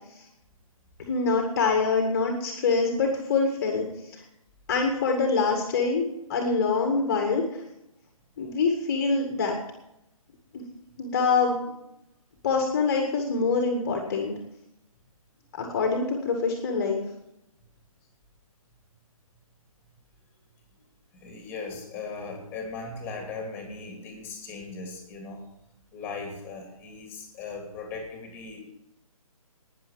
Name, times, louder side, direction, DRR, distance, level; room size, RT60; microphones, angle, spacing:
voice 1, 1.0-3.8 4.1-4.2 4.7-7.4 8.4-9.6 10.5-10.6 11.0-11.6 12.4-14.3 15.5-17.0, left 4 dB, 30° left, 2 dB, 1.9 m, -25 dB
voice 2, 21.1-25.5 25.9-28.6, left 4 dB, 10° left, 2 dB, 2.8 m, -38 dB
12.0 x 9.8 x 7.4 m, 0.85 s
figure-of-eight pair, 145°, 19 cm